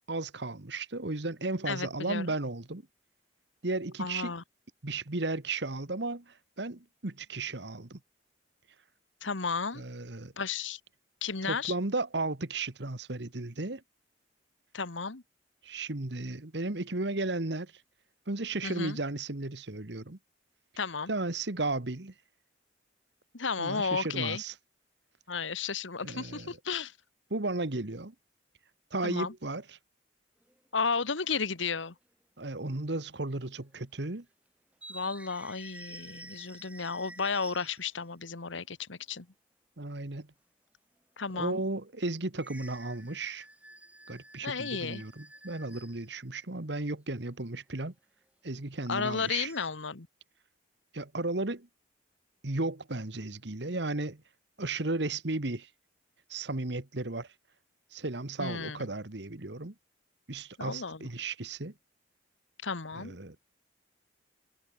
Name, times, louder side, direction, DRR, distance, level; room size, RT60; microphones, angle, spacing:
voice 1, 0.1-2.8 3.6-4.3 4.8-8.0 9.7-10.3 11.5-13.8 15.6-17.7 18.3-20.2 21.1-22.1 23.6-24.5 26.0-26.6 27.3-28.1 28.9-29.8 32.4-34.2 39.8-40.3 41.3-43.4 44.1-47.9 48.4-49.5 50.9-51.7 52.4-54.2 54.6-55.7 56.3-57.3 57.9-59.7 60.3-61.7 62.9-63.3, right 2 dB, 65° right, 1.6 m, -34 dB
voice 2, 1.7-2.3 4.0-4.4 9.2-9.8 10.4-10.8 11.2-11.7 14.7-15.2 18.6-19.0 20.8-21.1 23.3-24.4 25.3-26.9 29.0-29.3 30.7-31.9 34.9-39.3 41.2-41.6 44.4-45.0 48.9-50.1 58.4-58.9 60.6-61.1 62.6-63.2, left 5 dB, 85° left, 1.5 m, -33 dB
sound 1, 30.4-30.7 31.9-32.0 33.0-33.3 33.6-33.7 34.7-38.0 42.4-46.2 49.0-49.7, right 2 dB, 5° right, 1.7 m, -50 dB
head